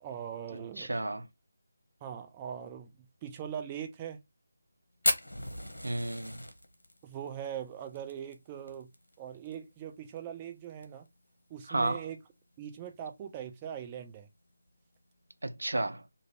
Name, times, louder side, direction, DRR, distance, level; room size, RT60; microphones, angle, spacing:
voice 1, 0.0-0.9 2.0-2.9 3.2-4.2 7.0-8.9 9.2-11.1 11.5-12.2 12.6-14.3, right 9 dB, 20° right, 0.4 m, -41 dB
voice 2, 0.5-1.3 5.8-6.3 11.7-12.0 15.4-16.0, right 2 dB, 65° right, 0.5 m, -32 dB
Fire, 5.0-9.5 9.8-9.9 10.2-10.3 10.6-11.1 11.6-11.7 12.7-12.9, left 1 dB, 75° left, 0.8 m, -34 dB
2.6 x 2.5 x 3.1 m
figure-of-eight pair, 155°, 0 cm